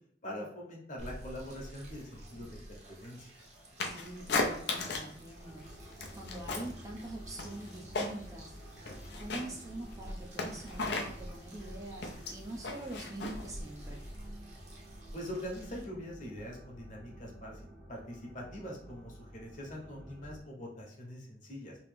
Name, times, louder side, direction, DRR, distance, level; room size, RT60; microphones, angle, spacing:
voice 1, 0.2-3.3 15.1-17.6 17.9-21.8, equal, 45° left, -1 dB, 1.1 m, -43 dB
sound 1, 1.0-15.8, equal, 40° right, 0.9 m, -50 dB
sound 2, 3.8-5.2 5.5-6.8 7.1-8.4 8.7-14.1, left 3 dB, 70° left, 0.6 m, -36 dB
voice 2, 3.8-8.5 9.2-14.0, right 2 dB, 20° right, 0 dB, 0.5 m, -45 dB
sound 3, 5.4-20.4, equal, 70° right, 1.2 m, -52 dB
3.1 x 2.9 x 3.4 m, 0.67 s
head